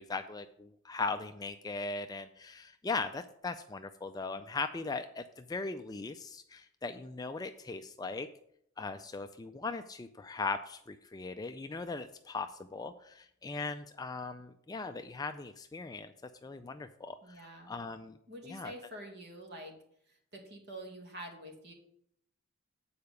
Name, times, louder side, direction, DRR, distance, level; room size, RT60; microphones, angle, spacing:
voice 1, 0.0-8.3 8.8-16.1 16.4-18.2 18.5-18.7, left 3 dB, 15° left, 8 dB, 0.3 m, -39 dB
voice 2, 17.2-17.7 18.3-19.7 20.3-21.7, right 1 dB, 45° right, 2 dB, 2.0 m, -46 dB
8.7 x 4.7 x 6.6 m, 0.69 s
head